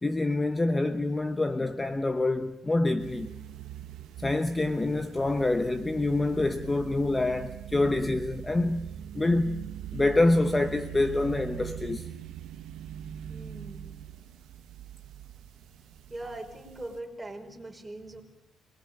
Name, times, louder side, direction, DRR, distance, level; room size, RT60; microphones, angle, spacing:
voice 1, 0.0-3.3 4.2-9.6 9.9-12.1, left 2 dB, 15° left, 1.1 m, -26 dB
sound 1, 3.0-17.0, right 10 dB, 80° right, 1.4 m, -42 dB
voice 2, 13.3-13.8 15.9-18.2, right 1 dB, 10° right, 5.4 m, -41 dB
27.5 x 21.5 x 9.0 m
cardioid pair, 105°, 0 cm